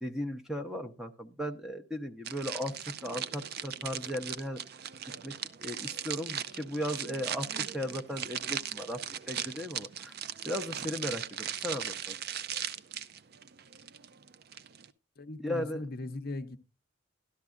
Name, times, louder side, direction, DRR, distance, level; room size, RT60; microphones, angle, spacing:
voice 1, 0.0-4.6 5.2-5.3 5.6-10.1 10.4-12.2 15.4-15.8, equal, ahead, 0.6 m, -36 dB
sound 1, 2.3-14.9, right 9 dB, 50° right, 0.4 m, -38 dB
voice 2, 15.2-16.6, left 2 dB, 50° left, 0.6 m, -39 dB
12.5 x 12.0 x 2.4 m
head